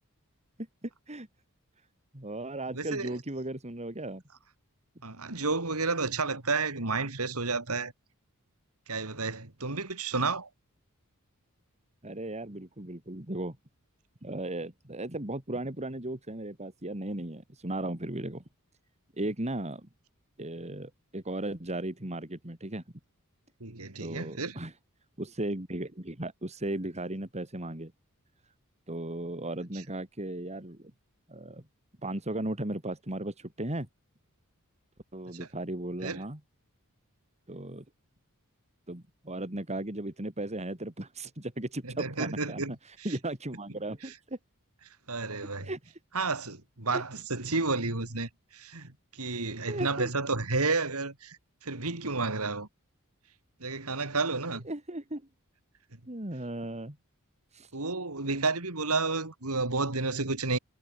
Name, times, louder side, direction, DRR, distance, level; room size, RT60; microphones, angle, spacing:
voice 1, 0.8-1.3 2.1-4.2 12.0-13.6 14.2-18.4 19.2-19.9 20.4-22.8 24.0-24.7 25.2-27.9 28.9-30.9 31.3-31.6 32.0-33.9 35.1-36.4 37.5-37.8 38.9-44.4 45.6-45.8 46.9-47.0 49.7-50.1 54.6-55.2 56.1-57.0 57.5-57.7, right 1 dB, 30° right, 3.1 m, -36 dB
voice 2, 2.7-3.2 5.0-7.9 8.9-10.5 23.6-24.6 35.3-35.5 36.0-36.2 41.8-42.7 44.0-44.1 45.1-45.7 46.1-52.7 53.6-54.7 57.7-60.6, right 3 dB, 75° right, 3.3 m, -31 dB
head